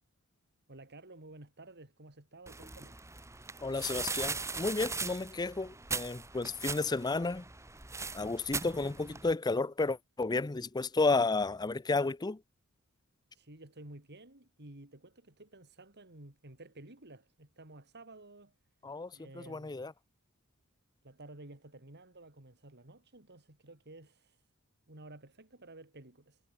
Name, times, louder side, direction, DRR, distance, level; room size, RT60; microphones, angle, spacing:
voice 1, 0.7-3.0 13.3-18.5 19.1-19.7 21.0-24.4 24.9-26.4, right 2 dB, 50° right, 3.5 m, -53 dB
sound 1, 2.5-9.3, right 4 dB, 15° right, 1.5 m, -40 dB
voice 2, 3.6-7.4 8.1-12.4 18.8-19.9, left 3 dB, 20° left, 0.5 m, -32 dB
head